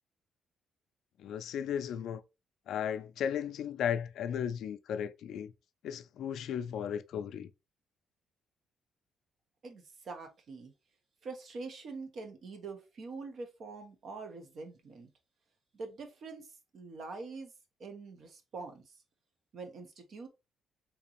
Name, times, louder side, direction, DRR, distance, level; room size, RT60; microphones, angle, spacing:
voice 1, 1.2-2.2 2.7-5.5 5.8-7.5, left 8 dB, 75° left, 0.3 m, -35 dB
voice 2, 9.6-10.7 11.2-15.1 15.7-17.5 17.8-18.9 19.5-20.3, right 3 dB, 60° right, 0.9 m, -44 dB
3.6 x 2.8 x 2.9 m
cardioid pair, 90°, 0 cm